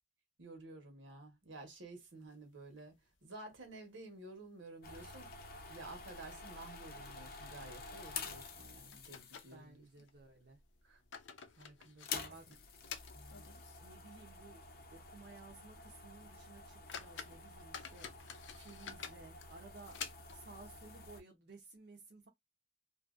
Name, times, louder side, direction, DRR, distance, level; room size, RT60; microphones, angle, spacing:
voice 1, 0.4-2.9 3.2-5.3 5.7-9.8 10.8-11.0 11.6-12.5 13.1-13.5, right 2 dB, 90° right, 1.2 m, -52 dB
sound 1, 2.2-3.1 3.5-3.6 3.9-4.0 4.6-5.1 5.4-5.6 6.2-6.3 6.7-6.8 8.2-8.3 8.9-10.1 10.8-14.0 14.3-14.4 15.0-15.1 15.5-15.7 16.2-16.3 16.7-20.6, left 7 dB, 90° left, 0.6 m, -50 dB
sound 2, 4.8-9.7 10.5-10.9 11.2-11.3 11.9-21.2, left 4 dB, 50° left, 0.6 m, -49 dB
voice 2, 9.5-10.6 12.3-12.4 13.8-14.6 14.9-18.1 18.6-20.0 20.3-22.3, right 3 dB, 60° right, 0.7 m, -56 dB
2.8 x 2.6 x 2.4 m
head